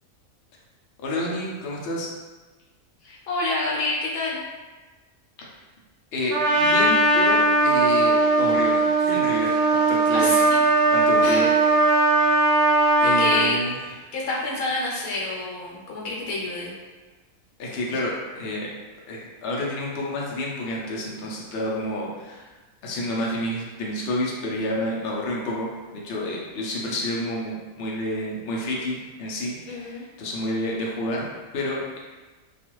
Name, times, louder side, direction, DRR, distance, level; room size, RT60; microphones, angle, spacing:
voice 1, 1.0-2.1 5.4-5.5 6.1-10.3 10.9-11.5 13.0-13.8 17.6-18.7 19.1-22.5 22.8-31.2 31.5-32.0, left 1 dB, 60° left, -4 dB, 0.7 m, -29 dB
voice 2, 3.0-4.4 10.1-10.6 11.2-11.5 13.0-13.6 14.1-16.7 29.7-30.0, left 2 dB, 80° left, -3 dB, 1.1 m, -28 dB
Trumpet, 6.3-13.4, right 2 dB, 90° right, 1.1 m, -19 dB
2.4 x 2.3 x 2.9 m, 1.2 s
omnidirectional pair, 1.5 m